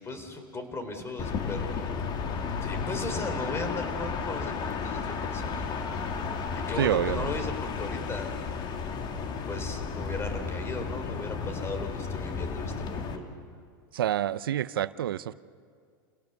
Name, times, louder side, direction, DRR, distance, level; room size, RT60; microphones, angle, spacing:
voice 1, 0.0-1.9 2.6-6.0 6.5-8.4 9.5-13.3, left 2 dB, 20° left, 7 dB, 3.8 m, -37 dB
sound 1, 1.2-13.2, left 5 dB, 40° left, 2.1 m, -33 dB
voice 2, 6.8-7.3 13.9-15.3, right 11 dB, 85° right, 17 dB, 0.6 m, -27 dB
28.5 x 17.0 x 6.9 m, 2.1 s
hypercardioid pair, 105°, 12 cm